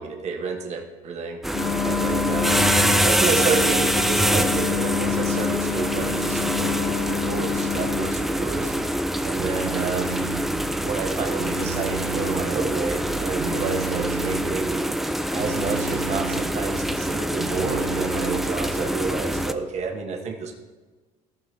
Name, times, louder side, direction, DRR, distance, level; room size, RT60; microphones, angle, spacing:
voice 1, 0.0-1.4 1.8-2.7 3.0-8.7 9.2-10.2 10.8-14.8 15.3-20.5, right 4 dB, 40° right, 1 dB, 1.4 m, -29 dB
sound 1, 1.4-19.5, equal, ahead, 0.4 m, -25 dB
Wind instrument woodwind instrument, 1.5-8.2, left 9 dB, 60° left, 1.3 m, -28 dB
Telephone, 9.4-10.5 11.4-12.5 13.4-14.5 15.4-16.5 17.4-18.5, right 8 dB, 70° right, 1.1 m, -35 dB
15.0 x 5.7 x 3.3 m, 1.3 s
supercardioid pair, 100°, 17 cm